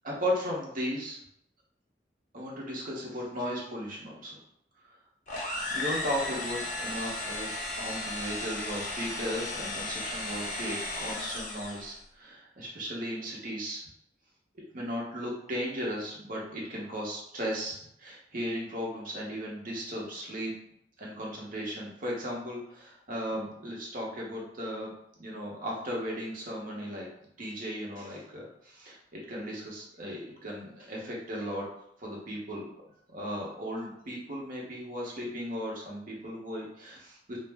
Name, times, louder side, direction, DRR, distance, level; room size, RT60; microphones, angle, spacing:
voice 1, 0.0-1.2 2.3-4.4 5.7-7.5 7.8-13.8 14.7-20.5 21.0-24.9 25.2-27.1 27.4-31.7 32.0-32.6 33.1-37.4, equal, 50° right, -3 dB, 0.8 m, -36 dB
sound 1, 5.3-12.0, left 2 dB, 45° left, 0.6 m, -35 dB
2.5 x 2.0 x 3.3 m, 0.72 s
head